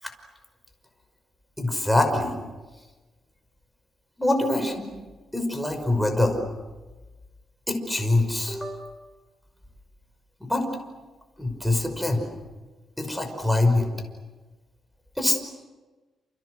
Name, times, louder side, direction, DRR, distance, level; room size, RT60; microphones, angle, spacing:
voice 1, 1.6-2.3 4.2-4.9 5.3-6.4 7.7-8.8 10.4-10.6 11.4-12.3 13.0-13.9 15.2-15.4, left 2 dB, 5° left, 4 dB, 5.7 m, -24 dB
29.5 x 28.5 x 6.6 m, 1.2 s
cardioid pair, 105°, 0 cm